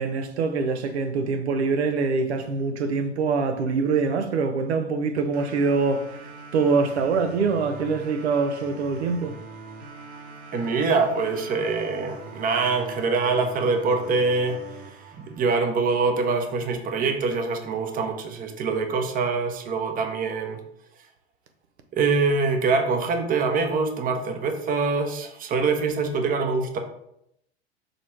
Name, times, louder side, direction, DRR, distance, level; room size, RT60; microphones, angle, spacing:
voice 1, 0.0-6.1 6.5-9.3, right 4 dB, 70° right, 0.8 m, -24 dB
sound 1, 5.3-16.3, right 3 dB, 50° right, 1.4 m, -43 dB
voice 2, 10.5-20.6 21.9-26.8, right 4 dB, 25° right, 0.8 m, -24 dB
6.5 x 3.2 x 4.6 m
hypercardioid pair, 95°, 34 cm